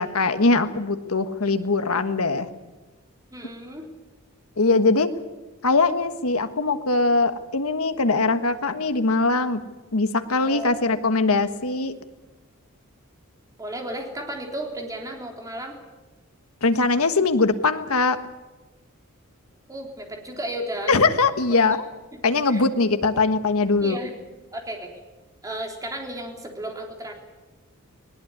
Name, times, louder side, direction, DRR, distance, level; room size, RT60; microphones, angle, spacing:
voice 1, 0.0-2.5 4.6-5.1 5.6-9.6 9.9-11.9 16.6-18.2 20.9-21.8 22.2-24.0, left 3 dB, 75° left, 9 dB, 1.5 m, -21 dB
voice 2, 3.3-3.9 10.4-11.2 13.6-15.8 19.7-21.0 22.1-22.2 22.5-22.6 23.8-24.1 24.5-24.9 25.4-27.1, right 1 dB, 15° right, 2 dB, 3.5 m, -34 dB
20.0 x 19.0 x 9.7 m, 1.2 s
head